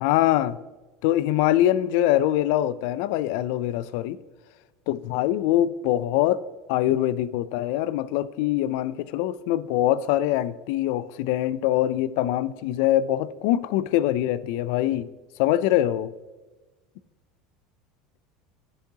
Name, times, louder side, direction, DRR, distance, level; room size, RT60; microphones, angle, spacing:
voice 1, 0.0-0.6 1.0-4.2 4.9-6.4 6.7-15.1 15.4-16.1, left 13 dB, 70° left, 0.3 m, -23 dB
10.0 x 6.2 x 2.8 m
supercardioid pair, 130°, 0 cm